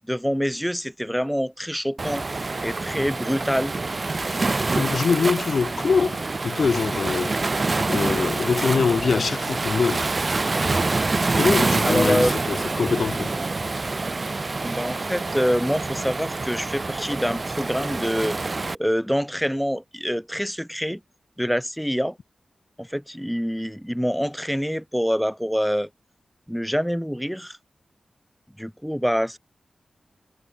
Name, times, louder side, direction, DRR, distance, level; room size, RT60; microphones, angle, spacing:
voice 1, 0.1-3.7 11.8-12.4 14.6-21.0 21.4-22.2 22.8-25.9 26.5-27.6 28.6-29.4, equal, ahead, 1.1 m, -26 dB
Waves surf, 2.0-18.8, right 3 dB, 40° right, 0.6 m, -26 dB
voice 2, 4.4-6.2 6.4-10.1 11.4-13.3, left 5 dB, 70° left, 0.5 m, -24 dB
wide cardioid pair, 95°, 0 cm